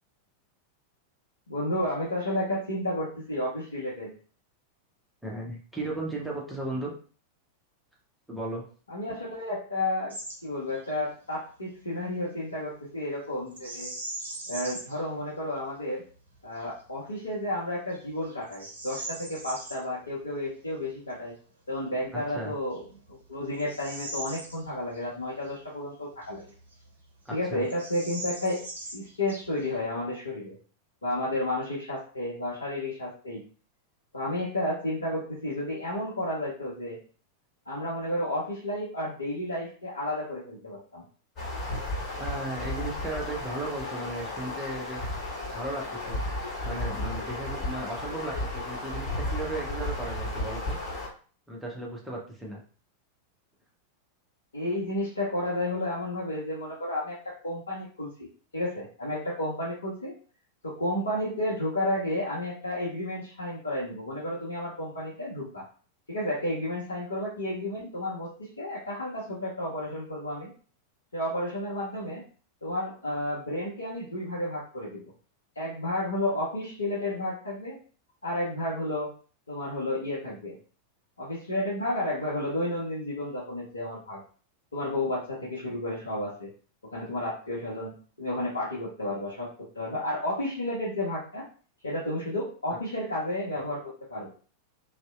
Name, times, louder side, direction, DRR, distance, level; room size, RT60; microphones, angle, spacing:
voice 1, 1.5-4.1 8.9-10.1 10.4-13.9 14.5-16.0 16.4-21.3 21.7-22.8 23.3-26.4 27.3-28.6 28.9-30.6 31.0-33.4 34.1-37.0 37.7-41.0 54.5-60.1 60.6-65.6 66.1-70.5 71.1-72.2 72.6-75.1 75.6-77.8 78.2-79.1 79.5-80.5 81.2-84.2 84.7-86.5 86.9-91.5 91.8-94.3, left 1 dB, 75° left, -7 dB, 0.6 m, -32 dB
voice 2, 5.2-6.9 8.3-8.6 22.1-22.5 27.2-27.7 42.2-45.2 45.5-46.2 46.6-50.8 51.5-52.6, right 2 dB, 5° right, -3 dB, 0.7 m, -36 dB
Bird vocalization bird call bird song, 10.1-10.4 10.7-11.0 13.5-15.0 15.6-15.7 16.3-16.7 17.2-17.3 17.9-19.8 21.9-22.0 22.6-25.1 25.4-25.5 26.2-27.0 27.3-27.4 27.6-29.8, right 1 dB, 70° right, 0.5 m, -40 dB
sound 1, 41.4-51.1, left 1 dB, 30° left, 1.3 m, -34 dB
2.7 x 2.1 x 2.3 m, 0.40 s
figure-of-eight pair, 90°, 0 cm